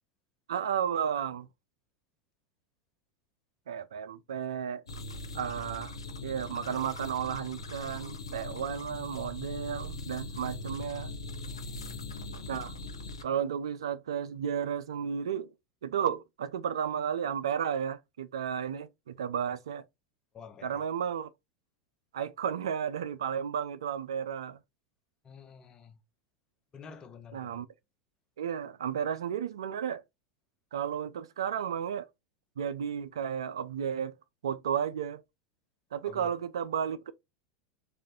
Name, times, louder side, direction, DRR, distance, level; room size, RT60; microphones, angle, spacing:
voice 1, 0.5-1.5 3.7-4.8 5.3-5.9 6.2-11.1 12.5-12.7 13.2-15.5 15.8-19.8 20.6-21.3 22.1-24.6 27.3-27.7 28.4-30.0 30.7-32.1 32.6-34.1 34.4-35.2 35.9-37.1, right 8 dB, 75° right, 0.4 m, -33 dB
sound 1, 4.9-13.2, left 2 dB, 85° left, 0.6 m, -40 dB
voice 2, 11.5-12.1 20.3-20.9 25.2-26.0 26.7-27.6 36.0-36.3, left 6 dB, 30° left, 0.7 m, -50 dB
3.3 x 2.5 x 3.5 m
hypercardioid pair, 90°, 3 cm